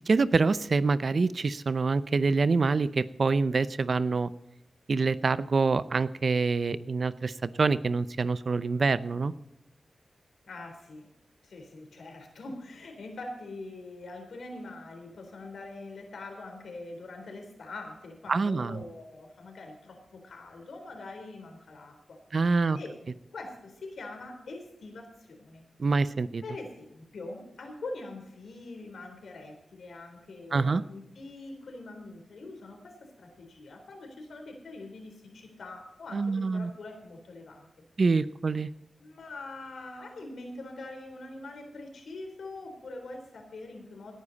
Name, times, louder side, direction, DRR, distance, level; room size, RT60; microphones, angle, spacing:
voice 1, 0.1-4.3 4.9-9.3 18.3-18.8 22.3-22.8 25.8-26.4 30.5-30.8 36.1-36.7 38.0-38.7, right 4 dB, 55° right, 15 dB, 0.7 m, -26 dB
voice 2, 10.5-11.1 11.4-22.2 22.5-23.0 23.3-25.6 26.4-37.7 39.0-44.1, left 2 dB, 85° left, 4 dB, 3.9 m, -43 dB
18.5 x 10.0 x 4.1 m, 0.84 s
wide cardioid pair, 80°, 0 cm